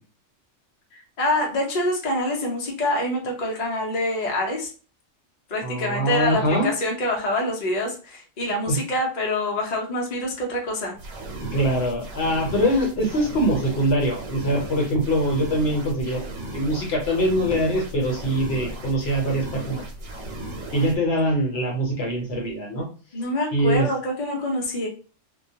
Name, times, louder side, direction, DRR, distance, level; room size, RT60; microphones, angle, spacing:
voice 1, 0.9-4.7 5.5-11.0 23.1-24.9, left 1 dB, 45° left, 0 dB, 0.6 m, -26 dB
voice 2, 5.6-6.7 8.7-8.8 11.5-19.8 20.7-22.9 23.5-23.9, right 1 dB, 60° left, -1 dB, 1.0 m, -23 dB
sound 1, 11.0-21.0, right 1 dB, 80° right, 1.1 m, -36 dB
2.2 x 2.2 x 2.7 m, 0.37 s
omnidirectional pair, 1.3 m